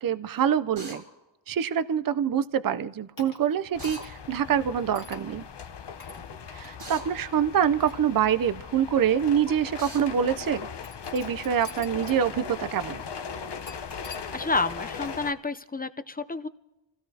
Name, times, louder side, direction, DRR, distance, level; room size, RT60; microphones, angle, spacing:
voice 1, 0.0-1.0 1.5-5.5 6.5-10.7 11.1-13.0, right 8 dB, 50° right, 14 dB, 0.5 m, -25 dB
Drill, 0.8-1.0 3.8-4.1 6.8-7.1 9.8-10.0, right 2 dB, 75° right, 4.2 m, -40 dB
sound 1, 3.2-4.3 4.9-5.3 6.0-6.2 6.6-6.8 7.6-8.7 9.5-9.6 10.8-12.2 12.5-12.6 13.7-14.3, left 3 dB, 45° left, 1.9 m, -47 dB
sound 2, 3.7-15.3, left 6 dB, 65° left, 0.9 m, -39 dB
voice 2, 14.2-16.5, left 3 dB, 20° left, 11 dB, 0.5 m, -30 dB
28.0 x 16.5 x 2.8 m, 1.0 s
wide cardioid pair, 95°, 44 cm